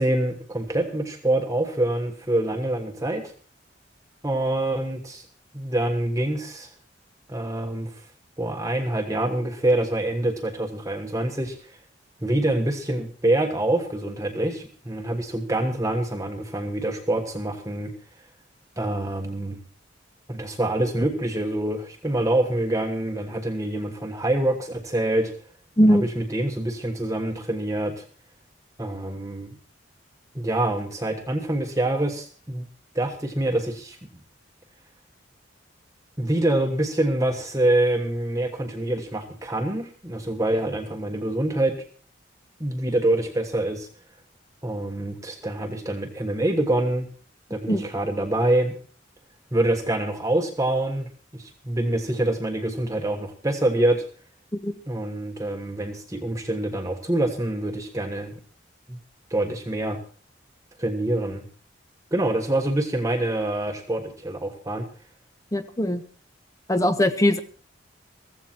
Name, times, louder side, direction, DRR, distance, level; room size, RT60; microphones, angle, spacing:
voice 1, 0.0-3.3 4.2-5.2 5.5-6.7 7.3-7.9 8.4-11.8 12.2-17.9 18.8-19.6 20.3-25.3 25.9-28.0 28.8-29.5 30.3-32.7 32.9-34.0 36.2-41.7 42.6-43.9 44.6-47.1 47.5-48.7 49.5-54.0 54.9-58.3 58.9-59.0 59.3-60.0 60.8-61.4 62.1-64.9, right 1 dB, 15° right, 4 dB, 1.3 m, -25 dB
voice 2, 25.8-26.1 47.7-47.8 54.5-54.7 65.5-66.0 66.7-67.4, equal, 15° left, 9 dB, 1.0 m, -20 dB
15.0 x 14.5 x 4.4 m, 0.40 s
head